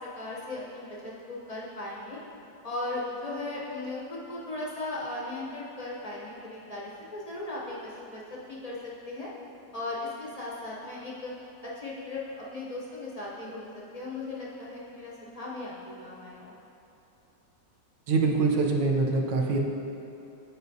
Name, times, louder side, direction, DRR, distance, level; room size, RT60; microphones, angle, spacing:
voice 1, 0.0-2.2 2.6-9.3 9.7-11.3 11.6-15.8 16.0-16.5, left 2 dB, 60° left, -5 dB, 0.4 m, -37 dB
voice 2, 18.1-19.6, right 3 dB, 85° right, 0 dB, 1.4 m, -24 dB
11.0 x 4.5 x 2.7 m, 3.0 s
omnidirectional pair, 1.9 m